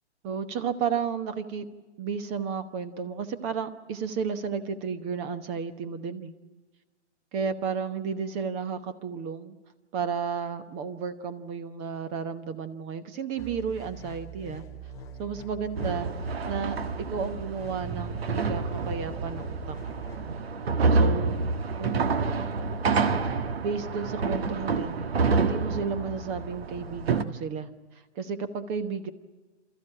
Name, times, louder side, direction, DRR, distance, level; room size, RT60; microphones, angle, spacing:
voice 1, 0.2-1.7 2.0-6.3 7.3-9.6 9.9-14.6 15.2-16.1 16.4-16.8 17.1-20.0 20.9-21.4 21.8-22.2 23.6-25.0 25.3-27.7 28.1-29.1, right 6 dB, 20° right, 11 dB, 1.1 m, -32 dB
sound 1, 13.4-20.3, right 6 dB, 10° left, 0.7 m, -43 dB
sound 2, 15.8-27.2, right 4 dB, 55° right, 1.5 m, -28 dB
29.0 x 14.5 x 8.9 m, 1.3 s
figure-of-eight pair, 140°, 36 cm